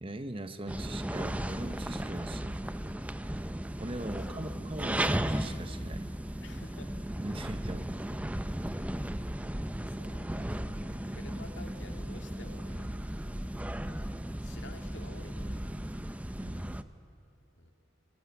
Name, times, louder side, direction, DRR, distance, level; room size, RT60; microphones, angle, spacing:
voice 1, 0.0-2.6 3.8-6.1 7.2-7.9 16.4-16.9, right 1 dB, 30° right, 10 dB, 1.0 m, -40 dB
sound 1, 0.7-16.8, right 1 dB, 5° right, 0.5 m, -36 dB
voice 2, 4.1-4.5 6.4-6.9 8.7-9.5 9.8-12.9 14.4-15.6 17.6-17.7, left 2 dB, 70° left, 5 dB, 2.1 m, -51 dB
24.5 x 19.0 x 9.6 m, 2.7 s
head